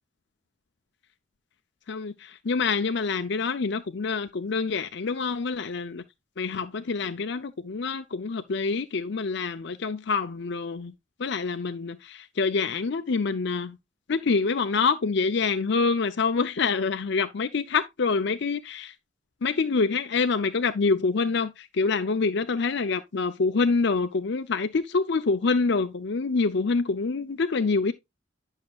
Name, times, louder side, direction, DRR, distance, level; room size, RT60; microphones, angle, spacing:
voice 1, 1.9-6.0 6.4-10.9 11.2-13.8 14.1-18.9 19.4-27.9, left 4 dB, 65° left, 0.6 m, -26 dB
10.5 x 6.4 x 2.3 m
head